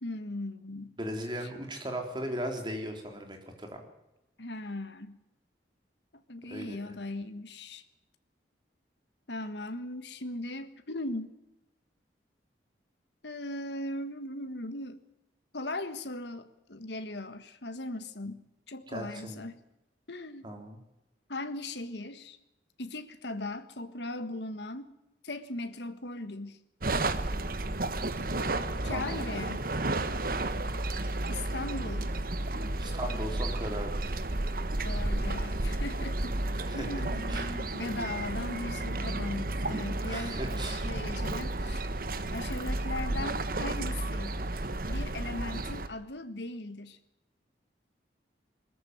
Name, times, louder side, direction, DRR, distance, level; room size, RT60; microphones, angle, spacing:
voice 1, 0.0-0.9 1.4-1.5 4.4-5.2 6.1-7.8 9.3-11.4 13.2-15.0 15.5-19.6 20.1-20.5 21.3-22.4 22.8-24.9 25.2-26.6 28.8-29.6 31.3-32.2 34.8-36.3 36.7-40.4 40.7-41.8 42.3-44.4 44.9-47.0, left 2 dB, 80° left, 10 dB, 1.6 m, -38 dB
voice 2, 1.0-3.8 6.5-6.8 18.9-19.4 20.4-20.8 28.9-29.3 32.8-34.0 36.7-36.9 37.3-37.6 40.1-40.9, right 1 dB, 25° right, 4 dB, 3.7 m, -37 dB
sound 1, 26.8-45.9, right 2 dB, 55° right, 1.3 m, -32 dB
21.5 x 14.0 x 9.4 m, 0.91 s
head